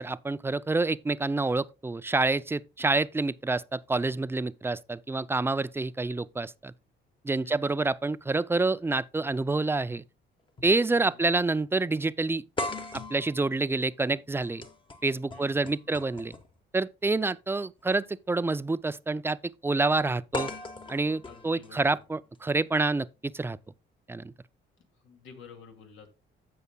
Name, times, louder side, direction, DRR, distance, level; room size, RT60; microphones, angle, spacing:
voice 1, 0.0-6.7 7.2-10.0 10.6-12.4 12.9-14.6 15.0-16.3 16.7-19.4 19.6-20.5 20.9-23.6 24.1-24.3, right 3 dB, 10° right, 0.3 m, -27 dB
voice 2, 7.4-7.9 10.9-11.2 15.3-15.9 21.2-22.0 25.0-26.1, left 6 dB, 80° left, 2.2 m, -51 dB
sound 1, 10.6-10.8 11.1-11.2 12.6-16.6 17.8-17.9 20.3-22.4, left 2 dB, 25° left, 1.2 m, -39 dB
15.5 x 5.5 x 2.2 m
cardioid pair, 90°, 20 cm